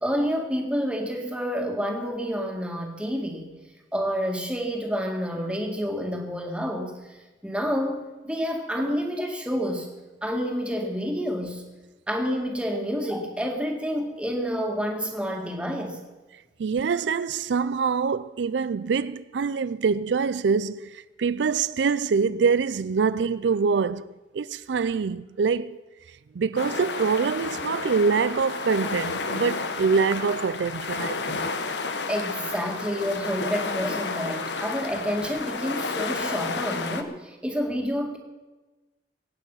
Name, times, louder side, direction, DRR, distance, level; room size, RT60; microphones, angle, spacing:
voice 1, 0.0-3.5 3.9-9.9 10.2-11.6 12.1-16.0 32.1-38.2, equal, 5° right, 2.0 m, -29 dB
voice 2, 16.6-25.8 26.3-31.5, right 5 dB, 85° right, 0.4 m, -25 dB
sound 1, 26.6-37.0, left 4 dB, 80° left, 1.1 m, -31 dB
23.0 x 9.0 x 5.6 m
head